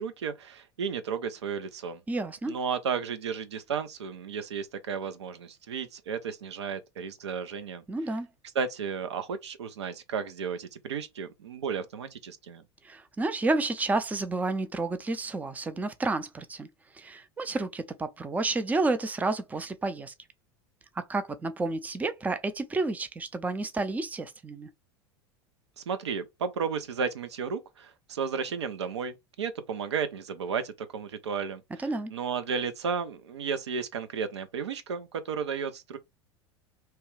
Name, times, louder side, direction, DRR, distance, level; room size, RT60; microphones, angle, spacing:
voice 1, 0.0-2.0 2.5-7.8 8.5-12.6 25.8-36.0, right 6 dB, 80° right, 0.5 m, -33 dB
voice 2, 2.1-2.5 7.9-8.3 12.8-16.7 16.9-20.1 21.1-24.7 31.8-32.1, right 3 dB, 10° right, 0.4 m, -30 dB
2.8 x 2.3 x 3.1 m
hypercardioid pair, 80°, 14 cm